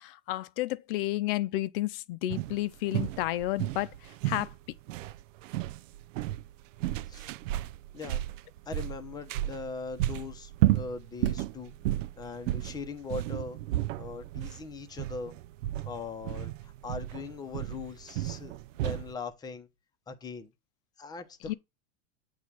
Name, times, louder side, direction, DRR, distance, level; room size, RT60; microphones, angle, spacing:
voice 1, 0.0-4.5 21.4-21.5, left 16 dB, 50° left, 0.7 m, -31 dB
sound 1, 2.3-19.1, right 15 dB, 85° right, 0.6 m, -33 dB
voice 2, 7.9-8.3 8.7-11.8 12.2-13.6 14.0-15.4 15.9-18.5 18.8-19.7 20.1-20.5 21.0-21.5, left 4 dB, 10° left, 0.8 m, -40 dB
8.5 x 3.2 x 6.0 m
supercardioid pair, 165°, 37 cm